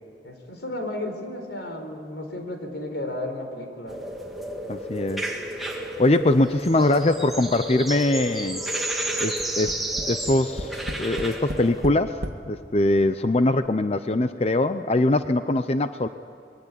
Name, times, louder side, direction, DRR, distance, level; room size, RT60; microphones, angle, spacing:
voice 1, 0.2-4.0, left 1 dB, 80° left, 5 dB, 4.5 m, -33 dB
sound 1, 3.9-11.9, right 1 dB, ahead, 2.4 m, -31 dB
voice 2, 4.7-5.3 6.0-8.6 9.2-9.8 10.1-16.1, left 2 dB, 35° left, 10 dB, 0.6 m, -22 dB
Tap, 9.4-12.4 13.2-13.3 13.6-13.7, equal, 70° right, 1.7 m, -33 dB
26.0 x 22.5 x 10.0 m, 2.3 s
head